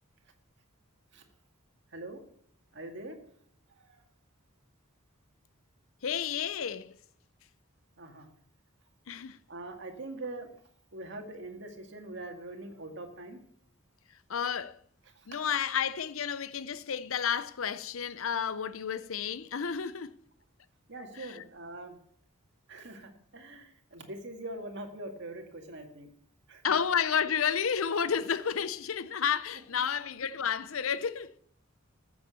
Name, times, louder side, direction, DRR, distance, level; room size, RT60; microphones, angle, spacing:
voice 1, 2.7-3.2 3.8-4.0 8.0-8.3 9.5-10.5 10.9-13.4 15.2-15.3 20.9-22.0 22.7-26.1 26.5-26.6, right 2 dB, 55° right, 2.2 m, -43 dB
voice 2, 6.0-7.0 9.1-9.4 14.3-14.8 15.3-20.2 21.2-21.4 26.6-31.3, left 7 dB, 75° left, 0.6 m, -31 dB
14.0 x 7.2 x 6.9 m
head